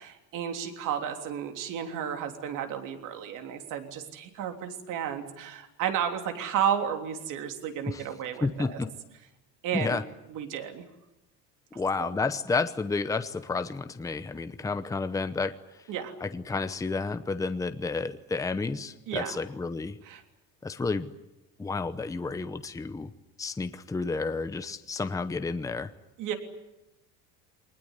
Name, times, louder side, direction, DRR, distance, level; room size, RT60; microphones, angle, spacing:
voice 1, 0.0-8.8 9.6-10.0 10.3-10.8 12.0-12.1 15.9-16.1 19.1-19.4 20.0-20.2 26.2-26.3, right 9 dB, 60° right, 6 dB, 3.3 m, -32 dB
voice 2, 8.4-8.9 9.7-10.0 11.7-15.6 16.2-20.0 20.6-21.1 21.6-23.1 23.4-25.9, left 4 dB, 10° left, 10 dB, 0.8 m, -31 dB
23.0 x 20.0 x 9.9 m, 0.96 s
cardioid pair, 145°, 34 cm